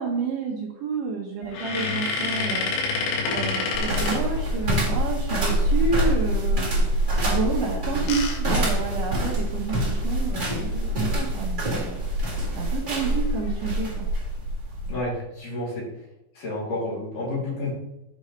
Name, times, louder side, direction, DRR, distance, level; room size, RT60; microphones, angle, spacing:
voice 1, 0.0-2.7 3.3-6.7 7.2-14.1, right 4 dB, 70° right, -2 dB, 2.0 m, -30 dB
sound 1, 1.4-4.9 7.6-9.5 10.1-10.2 10.4-10.6 12.1-12.4 13.0-13.6, left 4 dB, 85° left, 3.6 m, -29 dB
sound 2, 3.7-15.0, right 1 dB, 25° right, 1.1 m, -25 dB
voice 2, 14.9-15.8 16.4-17.7, left 2 dB, 50° left, -5 dB, 4.1 m, -30 dB
7.8 x 6.7 x 3.1 m, 0.89 s
omnidirectional pair, 5.0 m